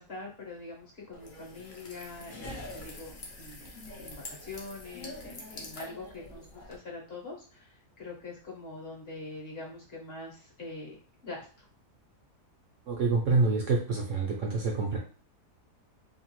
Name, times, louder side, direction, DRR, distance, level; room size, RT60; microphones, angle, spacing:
voice 1, 0.0-3.6 4.0-11.0 11.2-11.7, left 3 dB, 45° left, -3 dB, 0.9 m, -44 dB
sound 1, 1.1-6.8, left 2 dB, 65° left, 0.5 m, -44 dB
voice 2, 12.9-15.0, right 3 dB, 65° right, -1 dB, 0.8 m, -27 dB
2.7 x 2.3 x 2.9 m, 0.38 s
omnidirectional pair, 1.7 m